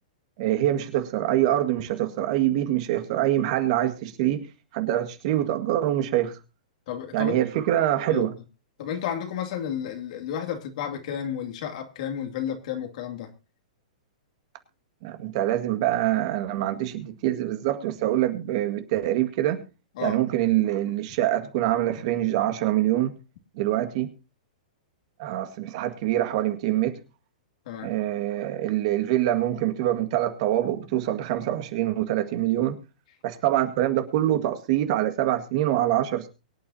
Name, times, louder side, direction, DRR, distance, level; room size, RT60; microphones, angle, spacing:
voice 1, 0.4-4.5 4.7-6.4 7.1-8.4 15.0-19.6 20.0-23.1 23.6-24.1 25.2-27.0 27.8-32.8 33.2-36.3, right 13 dB, 50° right, 8 dB, 1.9 m, -25 dB
voice 2, 6.9-7.4 8.1-8.2 8.8-13.3 20.0-20.2 27.7-27.9, left 9 dB, 60° left, 4 dB, 2.4 m, -32 dB
23.5 x 8.8 x 2.8 m, 0.31 s
hypercardioid pair, 135°, 4 cm